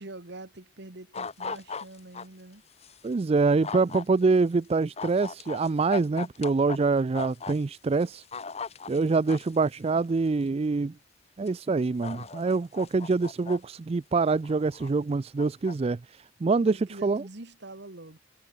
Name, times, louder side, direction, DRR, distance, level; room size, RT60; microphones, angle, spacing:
voice 1, 0.0-2.6 16.4-18.2, right 2 dB, 60° right, 1.8 m, -44 dB
sound 1, 1.1-2.3 2.8-3.0 3.6-4.0 5.0-6.8 7.1-7.6 8.0-9.6 10.4-10.5 11.5-11.6 12.0-13.6 14.2-14.9 15.4-15.7, left 4 dB, 35° left, 1.1 m, -37 dB
voice 2, 3.0-8.2 8.9-10.9 11.4-16.7 17.0-17.2, right 4 dB, 30° right, 0.4 m, -25 dB
head